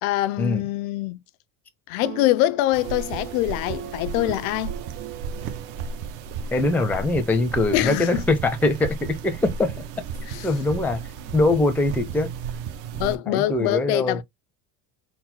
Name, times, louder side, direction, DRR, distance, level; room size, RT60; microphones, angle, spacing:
voice 1, 0.0-1.2 1.9-4.7 7.7-8.3 10.3-10.5 13.0-14.2, left 15 dB, 90° left, 0.5 m, -24 dB
sound 1, 2.0-6.5, right 12 dB, 35° right, 0.7 m, -40 dB
sound 2, 2.7-13.2, right 6 dB, 65° right, 0.9 m, -34 dB
voice 2, 6.5-9.0 9.2-9.8 10.4-11.0 11.3-12.3 12.9-14.2, left 2 dB, 5° left, 0.5 m, -22 dB
4.0 x 2.1 x 4.3 m
cardioid pair, 135°, 40 cm